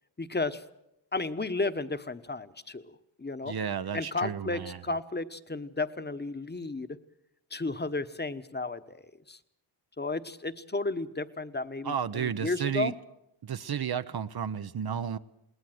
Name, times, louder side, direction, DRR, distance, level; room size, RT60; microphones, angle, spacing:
voice 1, 0.2-0.6 1.1-3.5 3.9-7.0 7.5-9.0 9.3-9.4 10.0-12.9, left 3 dB, 20° left, 12 dB, 1.1 m, -33 dB
voice 2, 3.4-4.8 11.8-12.9 13.4-15.2, right 8 dB, 55° right, 11 dB, 0.8 m, -32 dB
21.0 x 18.5 x 7.8 m, 0.84 s
cardioid pair, 70°, 46 cm